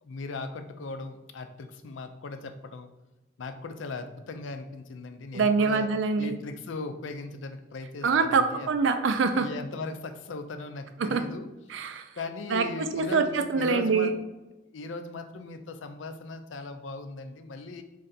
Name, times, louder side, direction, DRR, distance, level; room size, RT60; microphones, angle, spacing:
voice 1, 0.0-2.9 3.4-5.9 6.2-8.7 9.3-11.5 12.2-14.1 14.7-17.8, left 3 dB, 80° left, 7 dB, 0.5 m, -38 dB
voice 2, 5.3-6.4 8.0-9.5 11.0-11.2 11.7-12.1 12.5-14.1, right 4 dB, 75° right, 9 dB, 0.4 m, -25 dB
3.8 x 3.2 x 4.1 m, 1.0 s
head